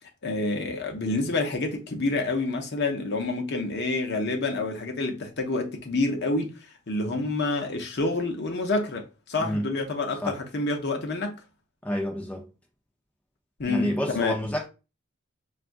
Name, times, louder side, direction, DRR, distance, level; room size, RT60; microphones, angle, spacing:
voice 1, 0.2-11.4 13.6-14.3, left 2 dB, 50° left, 0.7 m, -28 dB
voice 2, 11.8-12.5 13.7-14.7, equal, 5° left, 0.6 m, -29 dB
5.7 x 2.4 x 2.5 m
head